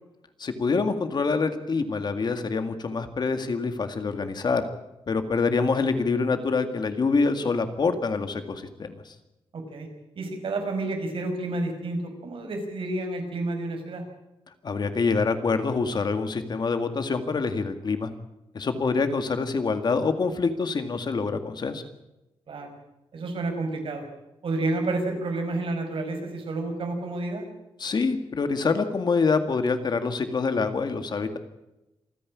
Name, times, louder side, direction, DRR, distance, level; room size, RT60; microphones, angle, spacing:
voice 1, 0.4-4.6 5.1-9.1 14.6-18.1 18.5-21.8 27.8-31.4, left 4 dB, 50° left, 8 dB, 2.0 m, -26 dB
voice 2, 9.5-9.9 10.2-14.0 18.9-19.0 22.5-22.8 23.1-24.1 24.4-27.5, right 2 dB, 65° right, 4 dB, 5.2 m, -30 dB
27.5 x 10.0 x 9.7 m, 0.97 s
wide cardioid pair, 140°, 10 cm